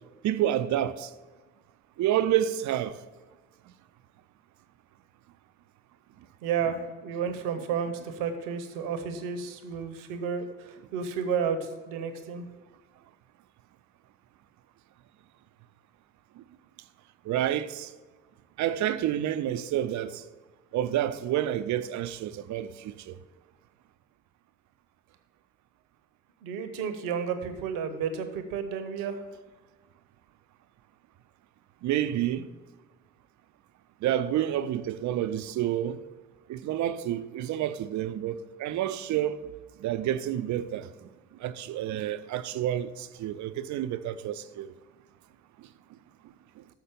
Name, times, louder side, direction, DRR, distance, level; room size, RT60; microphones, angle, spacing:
voice 1, 0.2-1.1 2.0-3.0 17.3-17.9 18.6-20.2 20.7-23.2 31.8-32.5 34.0-36.0 36.5-39.4 39.8-41.1 41.4-44.7, right 11 dB, 60° right, 0.5 m, -29 dB
voice 2, 6.4-11.6 11.9-12.5 26.4-29.2, right 7 dB, 75° right, 0.9 m, -32 dB
6.5 x 5.8 x 6.7 m
hypercardioid pair, 50°, 33 cm